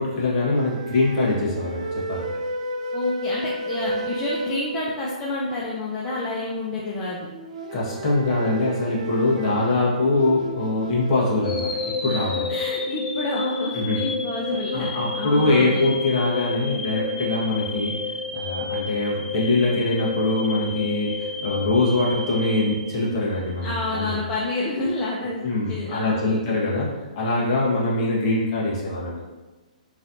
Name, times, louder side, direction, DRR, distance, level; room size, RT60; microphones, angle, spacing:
voice 1, 0.0-2.3 7.7-11.7 12.0-12.5 13.7-14.0 14.7-18.0 18.3-24.2 25.4-26.9 27.1-29.2, left 2 dB, 40° left, -5 dB, 1.4 m, -23 dB
sound 1, 0.5-5.3 7.3-12.3, right 2 dB, 55° right, 0.5 m, -33 dB
voice 2, 2.9-7.3 12.0-15.8 23.6-25.4 25.7-26.3, left 2 dB, 20° left, -6 dB, 0.6 m, -29 dB
sound 2, 11.4-23.6, left 4 dB, 70° left, 0.8 m, -30 dB
4.1 x 3.2 x 2.7 m, 1.2 s
hypercardioid pair, 135°, 4 cm